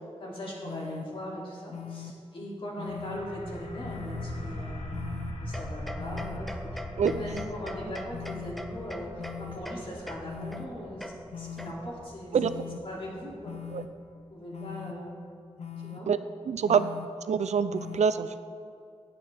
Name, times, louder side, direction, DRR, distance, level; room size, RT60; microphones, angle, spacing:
voice 1, 0.2-5.0 5.4-6.6 7.1-13.5 14.3-15.2 15.8-16.1, equal, 50° left, -4 dB, 2.8 m, -39 dB
sound 1, 0.6-1.0 1.7-2.1 2.8-3.2 3.8-4.2 4.9-5.3 6.0-6.4 7.0-7.4 8.1-8.5 9.2-9.6 10.2-10.7 11.3-11.7 12.4-12.8 13.4-13.9 14.5-14.9 15.6-16.0 16.7-17.1 17.7-18.0, left 9 dB, 70° left, 0.7 m, -40 dB
sound 2, 2.9-14.3, left 1 dB, 90° left, 1.9 m, -41 dB
sound 3, 5.5-12.1, left 1 dB, ahead, 0.5 m, -43 dB
voice 2, 16.5-16.9 17.2-18.3, right 6 dB, 80° right, 12 dB, 0.5 m, -25 dB
16.5 x 8.6 x 3.5 m, 2.3 s
wide cardioid pair, 160°, 12 cm